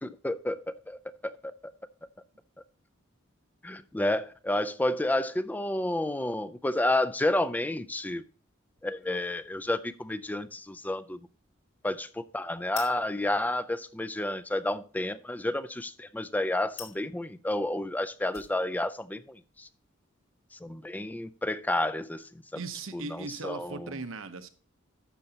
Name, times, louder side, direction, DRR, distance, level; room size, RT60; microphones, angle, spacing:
voice 1, 0.0-1.3 3.6-8.2 8.8-11.2 11.8-19.7 20.6-22.2 22.9-23.9, left 1 dB, 10° left, 0.4 m, -30 dB
sound 1, 8.7-21.8, left 7 dB, 85° left, 3.1 m, -54 dB
voice 2, 22.5-24.5, right 3 dB, 80° right, 0.9 m, -38 dB
12.0 x 7.0 x 2.8 m
head